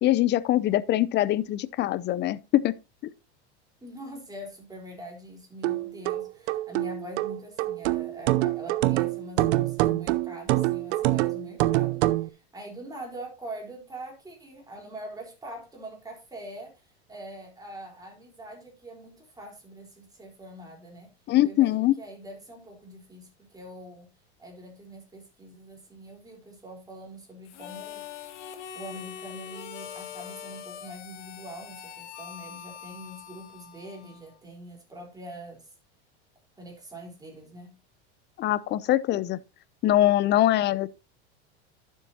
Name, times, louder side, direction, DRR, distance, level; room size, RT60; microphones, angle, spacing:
voice 1, 0.0-2.7 3.0-3.1 21.3-22.0 38.4-39.4 39.8-40.9, left 14 dB, 30° left, 0.6 m, -23 dB
voice 2, 3.8-21.1 21.4-24.1 24.4-28.0 28.7-35.7 36.6-37.8, right 1 dB, 10° right, 4.1 m, -43 dB
sound 1, 5.6-12.3, right 17 dB, 70° right, 0.8 m, -25 dB
Harmonica, 27.4-34.4, left 8 dB, 85° left, 1.5 m, -43 dB
12.0 x 7.4 x 2.8 m
supercardioid pair, 115°, 34 cm